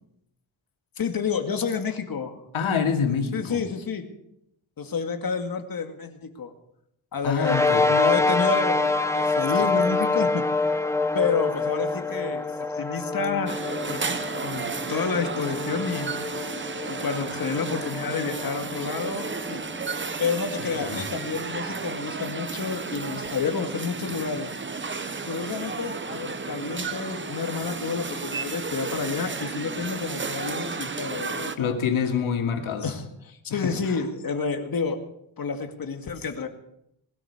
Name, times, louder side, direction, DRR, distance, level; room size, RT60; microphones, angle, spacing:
voice 1, 1.0-2.4 3.3-4.0 4.8-6.5 7.1-10.4 11.1-14.0 14.4-16.1 16.9-19.6 20.2-24.5 25.2-31.8 32.8-33.0 33.3-35.0 35.4-36.5, left 5 dB, 45° left, 2.1 m, -29 dB
voice 2, 2.5-3.6 7.2-7.9 20.6-21.1 31.6-32.9 33.5-34.0, left 6 dB, 85° left, 2.6 m, -27 dB
sound 1, 7.4-20.1, left 3 dB, 5° left, 0.8 m, -26 dB
sound 2, 13.5-31.6, right 4 dB, 25° right, 1.0 m, -33 dB
20.5 x 12.5 x 5.0 m
wide cardioid pair, 135°, 47 cm